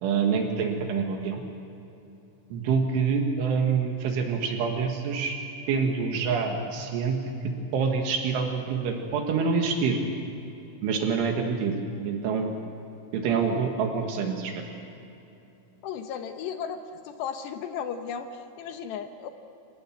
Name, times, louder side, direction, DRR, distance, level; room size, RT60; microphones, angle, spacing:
voice 1, 0.0-1.4 2.5-5.4 5.7-7.2 7.4-10.0 10.8-11.8 12.0-12.6 13.1-14.5, right 5 dB, 75° right, 3 dB, 4.1 m, -26 dB
voice 2, 15.8-19.3, left 7 dB, 75° left, 7 dB, 2.8 m, -35 dB
26.5 x 17.0 x 8.9 m, 2.9 s
omnidirectional pair, 5.8 m